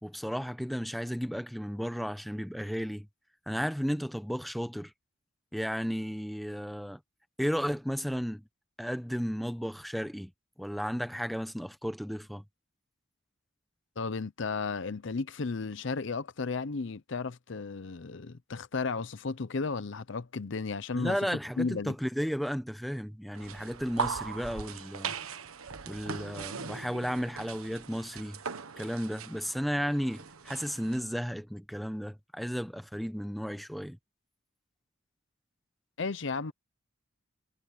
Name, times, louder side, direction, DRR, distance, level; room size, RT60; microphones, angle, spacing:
voice 1, 0.0-3.1 3.5-4.9 5.5-7.0 7.4-8.5 8.8-10.3 10.6-12.4 20.9-25.1 25.9-28.4 28.8-34.0, equal, ahead, 0.9 m, -34 dB
voice 2, 14.0-21.2 21.6-21.9 36.0-36.5, left 4 dB, 60° left, 0.6 m, -34 dB
sound 1, 23.4-31.0, right 5 dB, 90° right, 1.3 m, -39 dB
head